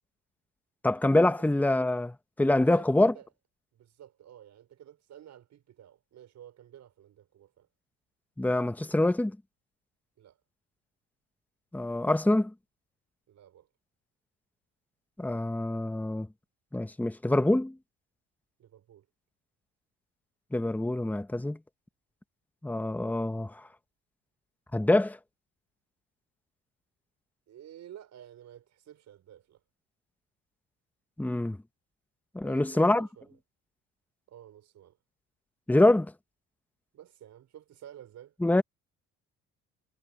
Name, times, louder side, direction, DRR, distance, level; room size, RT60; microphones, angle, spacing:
voice 1, 0.8-3.1 8.4-9.4 11.7-12.5 15.2-16.3 16.7-17.7 20.5-21.6 22.6-23.6 24.7-25.2 31.2-31.6 32.3-33.1 35.7-36.1 38.4-38.6, left 1 dB, 5° left, 1.2 m, -25 dB
voice 2, 2.6-3.3 3.7-7.7 10.2-10.4 13.3-13.7 18.6-19.1 27.5-29.6 32.3-33.4 34.3-35.0 36.9-38.3, right 11 dB, 60° right, 5.8 m, -51 dB
supercardioid pair, 85°, 32 cm